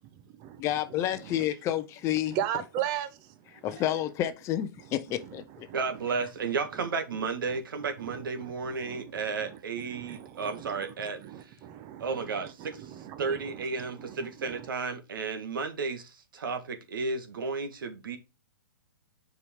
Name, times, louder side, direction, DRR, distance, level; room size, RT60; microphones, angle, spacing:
voice 1, 0.6-2.4 3.6-5.7, left 12 dB, 25° left, 0.7 m, -30 dB
voice 2, 1.2-1.5 2.3-3.1 5.1-5.4 5.7-5.8 8.0-8.1 8.4-8.5 8.8-9.0 9.4-9.5 9.9-12.1 12.6-13.4 14.0-14.2, right 11 dB, 35° right, 1.0 m, -36 dB
voice 3, 5.7-11.2 12.0-12.8 13.2-16.0 16.3-18.2, right 4 dB, 75° right, 1.6 m, -33 dB
6.9 x 4.9 x 3.6 m
hypercardioid pair, 140°, 11 cm